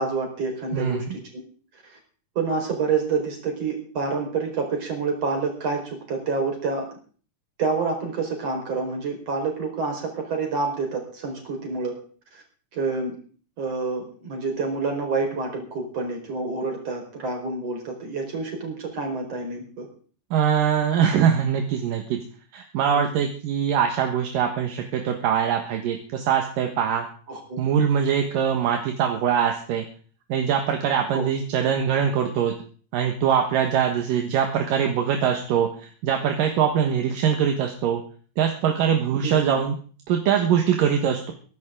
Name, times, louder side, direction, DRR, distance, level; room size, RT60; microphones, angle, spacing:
voice 1, 0.0-1.4 1.8-1.9 2.4-6.9 7.6-11.9 12.3-12.4 12.7-13.2 13.6-19.9 22.8-23.1 27.3-27.6 31.1-31.3 36.9-37.0 39.2-39.6, right 4 dB, 45° right, 2 dB, 5.4 m, -28 dB
voice 2, 0.7-1.2 20.3-22.2 22.5-27.1 27.6-29.9 30.3-32.5 32.9-38.0 38.4-39.8 40.1-41.3, right 8 dB, 70° right, 4 dB, 2.9 m, -23 dB
22.5 x 11.5 x 3.8 m, 0.42 s
omnidirectional pair, 4.2 m